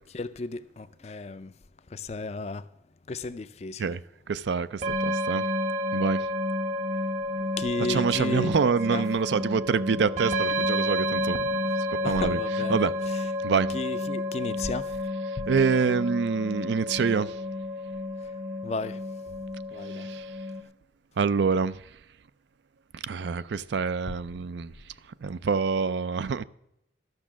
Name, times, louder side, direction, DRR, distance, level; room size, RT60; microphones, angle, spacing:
voice 1, 0.1-1.5 1.9-2.7 3.1-4.0 7.6-8.5 8.9-9.1 12.0-13.3 13.7-14.9 15.4-15.5 18.6-19.0 19.7-20.1 24.1-24.2, left 3 dB, 35° left, 0.4 m, -34 dB
voice 2, 4.3-5.4 5.9-6.2 7.9-11.5 11.9-12.4 12.7-12.9 13.4-13.7 15.5-17.3 20.1-20.2 21.2-21.8 23.1-24.7 25.2-26.4, right 5 dB, 70° right, 0.4 m, -26 dB
sound 1, 4.8-20.6, left 1 dB, 40° right, 0.9 m, -30 dB
12.5 x 6.1 x 7.3 m
head